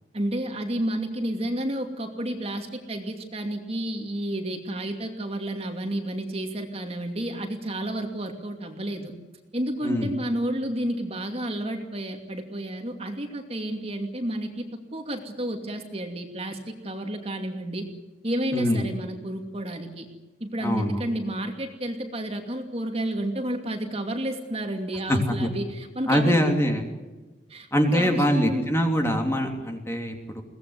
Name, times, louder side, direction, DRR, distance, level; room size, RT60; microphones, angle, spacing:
voice 1, 0.1-9.1 9.5-17.9 18.2-20.1 20.4-26.5 27.5-28.7, right 1 dB, 35° right, 4 dB, 2.6 m, -31 dB
voice 2, 9.8-10.1 18.5-18.9 20.6-21.0 25.1-25.5 26.1-26.8 27.7-30.4, equal, 15° left, 3 dB, 3.0 m, -23 dB
22.5 x 18.5 x 9.6 m, 1.2 s
head